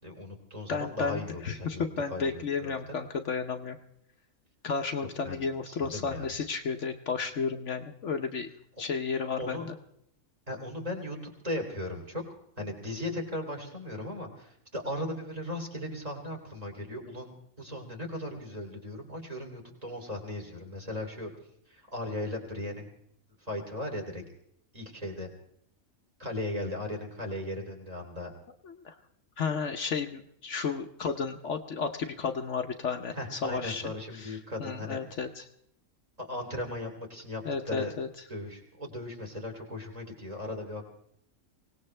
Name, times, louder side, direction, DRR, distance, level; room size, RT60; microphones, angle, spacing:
voice 1, 0.0-3.0 5.0-6.3 9.4-9.7 10.5-12.2 12.6-21.3 21.7-22.9 23.4-24.2 24.7-25.3 26.2-28.3 33.1-35.0 36.2-38.0 38.3-40.9, left 1 dB, 25° right, 2 dB, 3.0 m, -37 dB
voice 2, 0.7-3.8 4.6-8.5 8.8-9.7 28.6-29.0 29.4-33.8 34.1-35.5 37.4-38.1, left 5 dB, 60° left, 6 dB, 1.1 m, -33 dB
24.5 x 18.0 x 3.3 m, 0.73 s
omnidirectional pair, 1.4 m